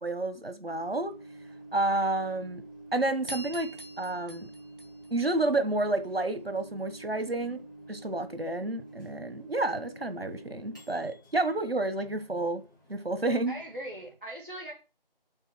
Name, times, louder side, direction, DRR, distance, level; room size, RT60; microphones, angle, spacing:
voice 1, 0.0-1.1 1.7-2.6 2.9-3.7 4.0-4.5 5.1-7.6 7.9-12.6 12.9-13.5, right 2 dB, 80° right, 1.4 m, -30 dB
Microwave oven, 0.7-14.1, right 2 dB, 20° left, 3.2 m, -49 dB
sound 1, 3.3-5.8, right 1 dB, 60° right, 2.8 m, -44 dB
voice 2, 13.5-14.7, right 1 dB, 10° right, 2.1 m, -40 dB
8.0 x 5.4 x 6.1 m
figure-of-eight pair, 170°, 29 cm